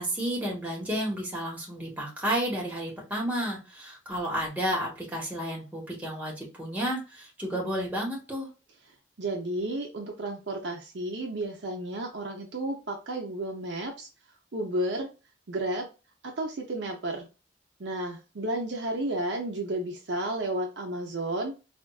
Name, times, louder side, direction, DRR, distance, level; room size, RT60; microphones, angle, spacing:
voice 1, 0.0-8.5, equal, 10° right, -3 dB, 1.1 m, -31 dB
voice 2, 9.2-14.1 14.5-15.1 15.5-15.9 16.2-17.3 17.8-21.5, right 1 dB, 70° right, 1 dB, 0.7 m, -32 dB
4.2 x 2.5 x 2.3 m, 0.31 s
head